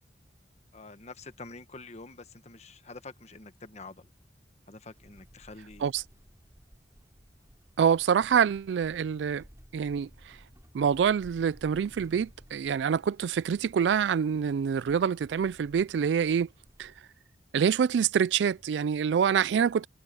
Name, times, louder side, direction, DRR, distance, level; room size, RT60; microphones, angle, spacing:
voice 1, 0.7-4.1 4.7-5.9, left 3 dB, 40° left, 1.3 m, -47 dB
sound 1, 4.9-17.0, equal, 20° right, 4.1 m, -57 dB
voice 2, 7.8-9.4 9.7-10.4 10.7-16.5 16.8-16.9 17.5-19.9, right 7 dB, 85° right, 0.3 m, -26 dB
head